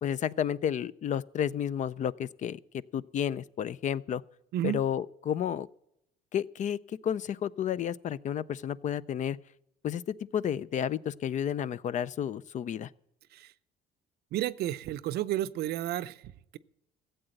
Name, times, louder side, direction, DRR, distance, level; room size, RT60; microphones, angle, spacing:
voice 1, 0.0-2.6 2.9-4.2 4.6-5.7 6.3-9.4 9.8-12.9, left 9 dB, 45° left, 19 dB, 0.5 m, -31 dB
voice 2, 14.3-16.6, right 13 dB, 70° right, 16 dB, 0.6 m, -32 dB
15.0 x 8.0 x 7.7 m, 0.79 s
cardioid pair, 110°, 17 cm